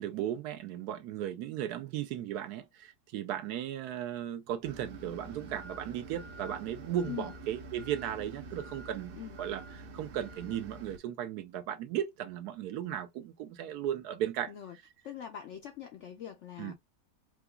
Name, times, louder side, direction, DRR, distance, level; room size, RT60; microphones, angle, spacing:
voice 1, 0.0-14.5 16.6-16.7, right 10 dB, 75° right, 1.1 m, -36 dB
sound 1, 4.6-11.0, right 3 dB, 55° right, 0.6 m, -47 dB
voice 2, 15.0-16.7, left 10 dB, 75° left, 0.6 m, -43 dB
4.8 x 2.3 x 2.3 m
omnidirectional pair, 1.8 m